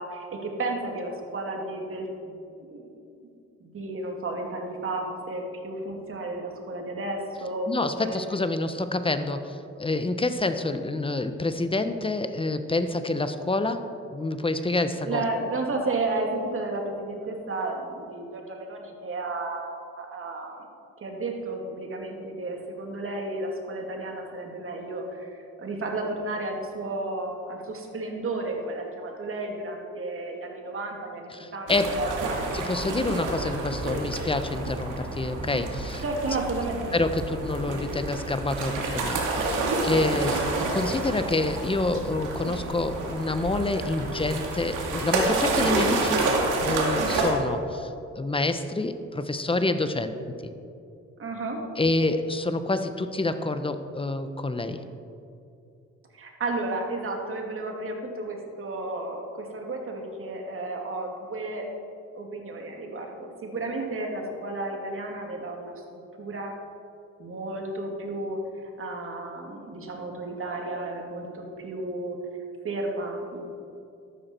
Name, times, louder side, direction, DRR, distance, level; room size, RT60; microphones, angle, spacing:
voice 1, 0.0-2.9 3.6-8.2 15.0-20.6 21.0-32.4 36.0-36.9 41.9-42.0 51.2-51.7 56.1-61.7 62.1-66.5 67.2-72.2 72.6-73.5, right 2 dB, 45° right, 1 dB, 2.5 m, -33 dB
voice 2, 7.7-15.2 31.3-31.9 32.5-36.0 36.9-46.3 46.6-47.9 48.2-50.2 51.8-54.8, left 2 dB, 20° left, 10 dB, 0.9 m, -27 dB
sound 1, 31.7-47.3, right 2 dB, 85° right, 2.3 m, -29 dB
13.5 x 12.0 x 4.5 m, 2.5 s
cardioid pair, 90°, 30 cm